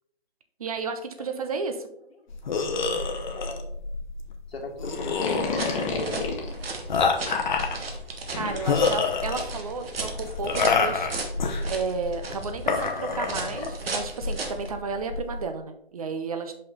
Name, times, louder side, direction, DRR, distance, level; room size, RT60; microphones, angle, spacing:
voice 1, 0.6-1.9 8.3-11.1 11.7-16.5, right 4 dB, 35° right, 7 dB, 0.6 m, -32 dB
sound 1, 2.3-15.4, left 4 dB, 50° left, 0.9 m, -28 dB
voice 2, 3.3-3.6 4.5-6.2, left 2 dB, 75° left, 0 dB, 1.7 m, -38 dB
sound 2, 5.0-6.6 8.3-8.8, left 4 dB, 30° left, 1.2 m, -30 dB
sound 3, 5.4-14.7, right 3 dB, 70° right, 1.5 m, -36 dB
5.5 x 5.4 x 3.7 m, 0.71 s
figure-of-eight pair, 150°, 31 cm